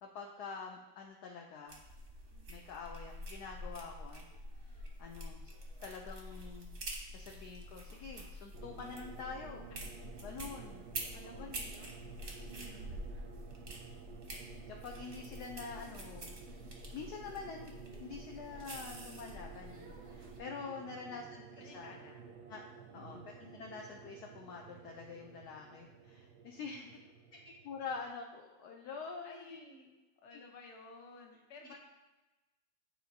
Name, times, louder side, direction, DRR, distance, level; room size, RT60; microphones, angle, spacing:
voice 1, 0.0-1.8 2.5-4.3 4.6-5.5 5.8-6.7 7.1-9.7 10.2-10.8 11.3-11.5 14.7-16.3 16.9-17.7 18.0-21.9 22.5-22.6 22.9-26.9 27.4-29.6 30.3-30.4, left 5 dB, 75° left, 1 dB, 0.9 m, -46 dB
sound 1, 1.7-20.4, equal, 45° right, 0.7 m, -47 dB
sound 2, 8.5-28.1, right 6 dB, 70° right, 1.0 m, -53 dB
voice 2, 11.1-12.1 12.5-13.0 20.8-21.3 21.6-22.3 22.9-23.3 27.3-27.4 29.2-31.8, left 3 dB, 50° left, 1 dB, 0.9 m, -55 dB
8.9 x 4.2 x 2.8 m, 1.1 s
omnidirectional pair, 2.2 m